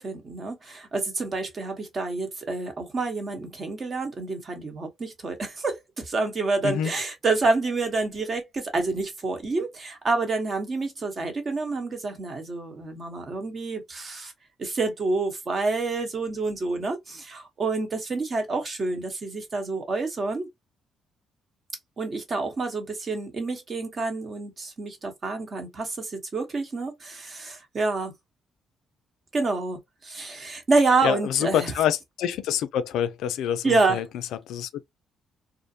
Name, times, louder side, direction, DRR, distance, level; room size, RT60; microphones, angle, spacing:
voice 1, 0.0-14.3 14.6-20.5 22.0-28.1 29.3-31.7 33.6-34.0, right 3 dB, 40° right, 1.0 m, -28 dB
voice 2, 31.0-34.0 34.5-34.8, left 10 dB, 85° left, 0.3 m, -26 dB
2.5 x 2.1 x 2.6 m
cardioid pair, 90°, 0 cm